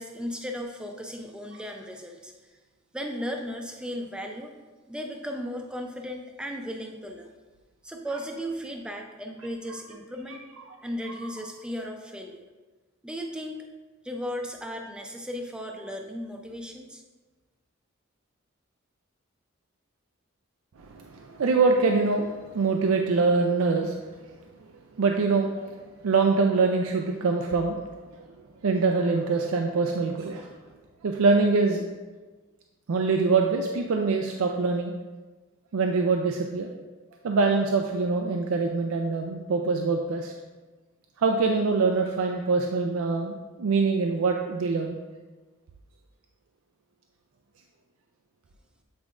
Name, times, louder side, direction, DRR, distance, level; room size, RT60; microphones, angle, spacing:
voice 1, 0.0-2.3 2.9-4.6 4.9-7.3 7.8-10.5 10.8-12.5 13.0-13.7 14.0-17.0, equal, 5° right, 2 dB, 0.5 m, -36 dB
voice 2, 20.8-24.4 25.0-25.7 26.0-27.8 28.1-28.3 28.6-30.5 31.0-31.8 32.9-34.9 35.7-36.7 37.2-40.3 41.2-45.0, right 4 dB, 80° right, 3 dB, 0.4 m, -24 dB
8.2 x 4.7 x 2.5 m, 1.3 s
head